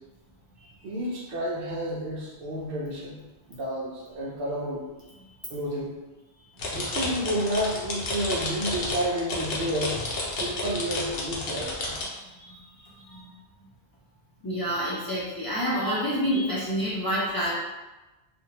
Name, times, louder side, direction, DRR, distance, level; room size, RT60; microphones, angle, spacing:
voice 1, 0.8-3.2 3.5-4.8 5.5-5.9 6.7-10.0 10.3-11.9, equal, 70° right, -5 dB, 0.8 m, -30 dB
sound 1, 6.6-12.1, left 2 dB, 65° left, 0.8 m, -31 dB
voice 2, 12.1-12.6 12.9-13.3 14.4-17.5, equal, 35° left, -8 dB, 0.4 m, -28 dB
2.6 x 2.0 x 2.8 m, 1.1 s
omnidirectional pair, 1.1 m